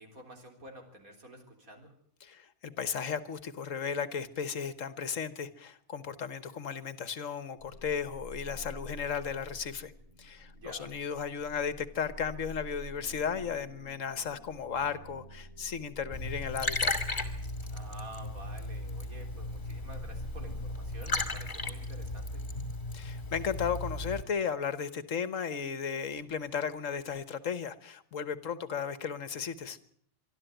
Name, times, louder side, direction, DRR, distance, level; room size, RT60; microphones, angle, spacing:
voice 1, 0.0-2.0 10.5-11.0 17.7-22.5, right 1 dB, 85° right, 3 dB, 4.2 m, -50 dB
voice 2, 2.2-9.9 10.2-16.9 22.9-29.8, left 7 dB, 65° left, 13 dB, 1.6 m, -35 dB
sound 1, 7.6-22.5, left 1 dB, 35° right, 4.1 m, -48 dB
Liquid, 16.1-24.2, left 2 dB, 35° left, 2.5 m, -35 dB
25.0 x 12.5 x 9.1 m, 0.62 s
omnidirectional pair, 1.4 m